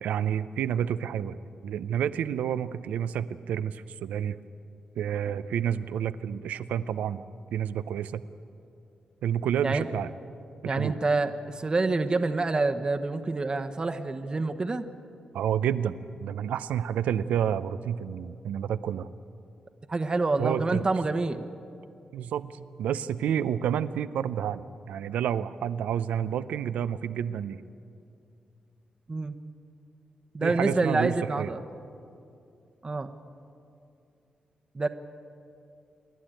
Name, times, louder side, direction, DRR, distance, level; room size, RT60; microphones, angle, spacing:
voice 1, 0.0-4.4 5.0-7.2 7.5-8.2 9.2-10.1 10.6-11.0 15.3-16.0 16.2-19.1 20.4-20.8 22.1-27.6 30.4-31.5, right 9 dB, 85° right, 13 dB, 0.6 m, -29 dB
voice 2, 10.6-14.8 19.9-21.4 29.1-29.3 30.3-31.6 32.8-33.1 34.7-34.9, right 3 dB, 35° right, 7 dB, 1.0 m, -27 dB
27.5 x 11.5 x 9.0 m, 2.6 s
cardioid pair, 55°, 2 cm